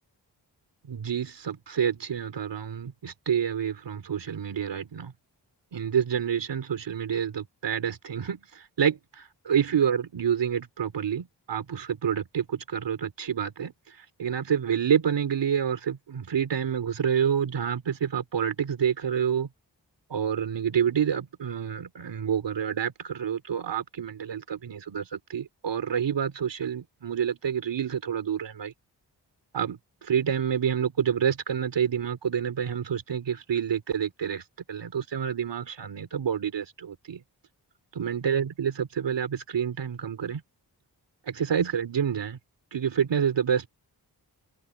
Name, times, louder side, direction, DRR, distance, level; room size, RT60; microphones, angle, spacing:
voice 1, 0.9-5.1 5.7-13.7 14.2-19.5 20.1-28.7 29.5-34.4 34.7-37.2 38.0-40.4 41.3-42.4 42.7-43.7, right 8 dB, 85° right, 2.9 m, -28 dB
wide cardioid pair, 80°, 42 cm